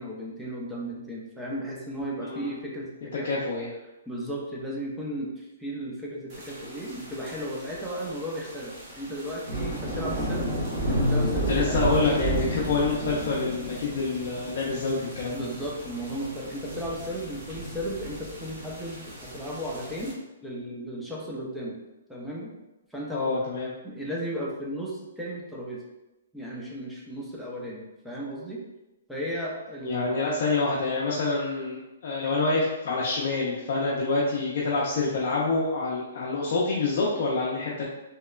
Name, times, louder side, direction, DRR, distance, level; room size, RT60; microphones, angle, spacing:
voice 1, 0.0-3.3 4.1-10.6 10.9-11.8 15.3-21.8 22.1-22.6 22.9-23.3 23.8-25.8 26.3-28.6 29.1-30.2, equal, ahead, -5 dB, 0.4 m, -35 dB
voice 2, 2.2-2.5 3.2-3.7 11.5-15.4 23.1-23.7 29.8-37.8, left 3 dB, 55° left, -5 dB, 0.4 m, -27 dB
sound 1, 6.3-20.1, equal, 35° right, 1.0 m, -32 dB
2.8 x 2.1 x 2.3 m, 0.99 s
hypercardioid pair, 150°, 0 cm